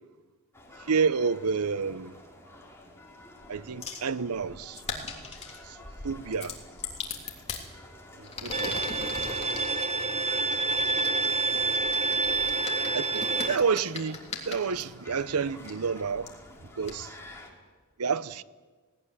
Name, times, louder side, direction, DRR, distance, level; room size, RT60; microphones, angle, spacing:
sound 1, 0.5-17.5, left 1 dB, 10° left, 3.4 m, -50 dB
voice 1, 0.9-2.1 3.5-4.8 6.0-6.6 8.2-8.8 12.9-14.2 14.5-16.3 16.8-17.1 18.0-18.4, right 5 dB, 80° right, 0.7 m, -29 dB
sound 2, 3.8-4.1 4.7-5.6 6.3-7.6 8.2-9.7 10.5-14.8 15.6-15.7 16.3-16.4 16.9-17.0, left 5 dB, 30° left, 3.2 m, -39 dB
Bowed string instrument, 8.5-13.5, right 3 dB, 30° right, 1.0 m, -28 dB
voice 2, 10.9-12.8 13.4-13.5, left 2 dB, 60° left, 6.3 m, -54 dB
19.5 x 18.0 x 10.0 m
head